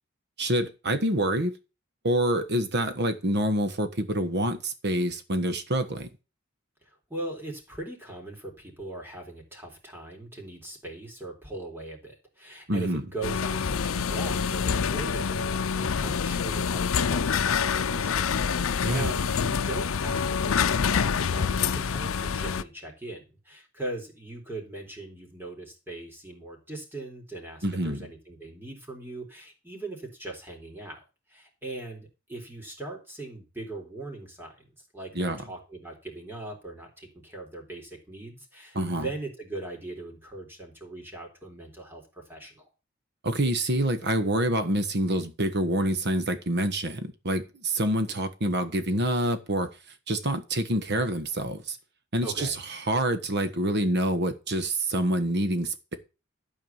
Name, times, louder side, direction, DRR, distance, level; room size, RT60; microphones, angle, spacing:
voice 1, 0.4-1.5 2.0-6.1 12.7-13.0 18.8-19.1 27.6-28.0 35.1-35.4 38.7-39.1 43.2-49.7 50.1-51.8 52.1-52.5 52.9-56.0, right 1 dB, 55° right, 1.4 m, -27 dB
voice 2, 6.8-34.6 34.9-42.7 52.2-52.6, right 2 dB, 10° right, 3.6 m, -40 dB
sound 1, 13.2-22.6, left 6 dB, 80° left, 0.6 m, -26 dB
12.5 x 4.8 x 7.3 m
head